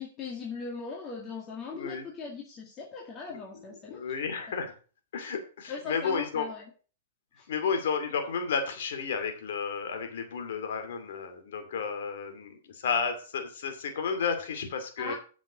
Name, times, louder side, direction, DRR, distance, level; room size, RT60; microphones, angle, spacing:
voice 1, 0.0-4.0 5.7-6.7 7.4-7.5 15.0-15.1, left 5 dB, 20° left, -2 dB, 2.0 m, -39 dB
voice 2, 1.7-2.0 3.3-3.4 3.9-4.7 5.1-6.5 7.5-15.1, left 6 dB, 70° left, 6 dB, 2.4 m, -32 dB
8.6 x 6.3 x 6.1 m, 0.38 s
hypercardioid pair, 160°, 0 cm